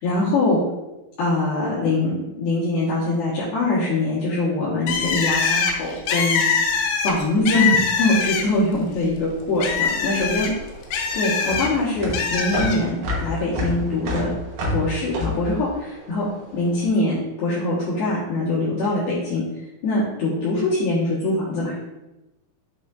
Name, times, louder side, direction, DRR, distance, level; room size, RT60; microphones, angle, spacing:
voice 1, 0.0-0.6 1.2-2.1 2.4-10.5 11.1-14.3 14.7-16.3 16.5-19.4 19.8-21.9, left 2 dB, 65° left, -10 dB, 3.1 m, -23 dB
Bird, 4.9-8.7 9.1-11.7 12.1-12.8, left 5 dB, 85° left, 3.3 m, -23 dB
sound 1, 10.1-16.6, left 1 dB, 70° right, 2.2 m, -29 dB
7.1 x 6.1 x 2.5 m, 0.97 s
omnidirectional pair, 5.5 m